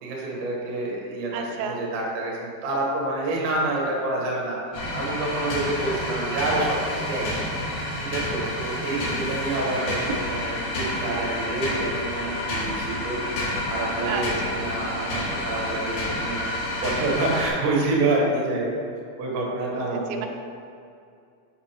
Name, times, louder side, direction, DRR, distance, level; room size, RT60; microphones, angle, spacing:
voice 1, 0.0-4.6 4.9-7.3 8.1-16.5 16.8-18.7 19.2-20.3, right 2 dB, 70° right, -3 dB, 3.2 m, -28 dB
voice 2, 1.3-1.8 8.9-9.8 14.0-14.9 19.7-20.3, right 4 dB, 85° right, 3 dB, 2.6 m, -34 dB
sound 1, 4.7-17.5, left 1 dB, 65° left, 3.9 m, -29 dB
8.0 x 6.1 x 3.0 m, 2.4 s
omnidirectional pair, 6.0 m